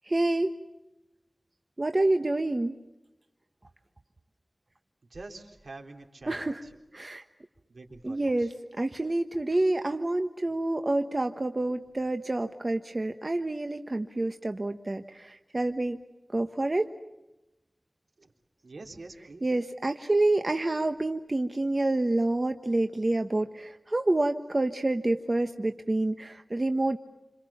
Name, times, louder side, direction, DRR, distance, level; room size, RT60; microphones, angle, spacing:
voice 1, 0.1-0.5 1.8-2.7 6.3-6.6 6.9-7.2 8.0-16.0 16.3-16.9 19.4-27.0, right 2 dB, 45° right, 7 dB, 1.2 m, -28 dB
voice 2, 5.1-6.7 7.7-8.5 18.2-18.3 18.6-19.5, right 2 dB, 80° right, 3 dB, 3.8 m, -46 dB
29.0 x 27.0 x 7.2 m, 0.96 s
wide cardioid pair, 55°, 0 cm